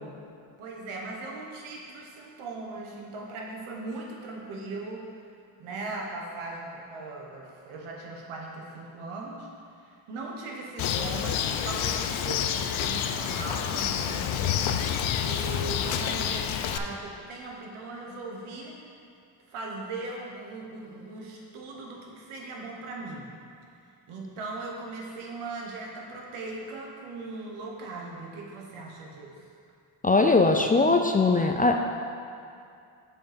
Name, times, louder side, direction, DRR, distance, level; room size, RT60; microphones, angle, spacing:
voice 1, 0.6-5.1 5.6-9.5 9.8-18.8 19.5-23.3 24.1-29.4, right 3 dB, 85° right, 0 dB, 1.4 m, -39 dB
Bird, 10.8-16.8, left 9 dB, 70° left, 0.6 m, -28 dB
voice 2, 30.0-31.8, left 3 dB, 20° left, 4 dB, 0.3 m, -21 dB
6.8 x 5.3 x 5.1 m, 2.5 s
cardioid pair, 85°, 48 cm